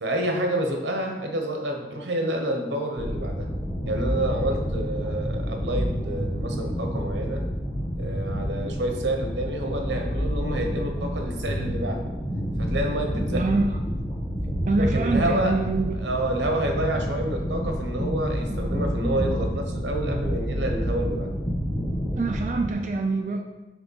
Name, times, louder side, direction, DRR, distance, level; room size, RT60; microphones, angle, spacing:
voice 1, 0.0-3.5 3.9-7.4 8.0-12.0 12.6-13.4 14.7-15.6 16.0-21.3, right 1 dB, 85° right, 3 dB, 1.0 m, -28 dB
sound 1, 3.0-22.7, equal, 20° left, 1.2 m, -29 dB
voice 2, 13.3-13.7 14.7-16.0 22.2-23.4, right 3 dB, 40° right, 2 dB, 0.3 m, -25 dB
5.0 x 3.6 x 5.4 m, 1.1 s
head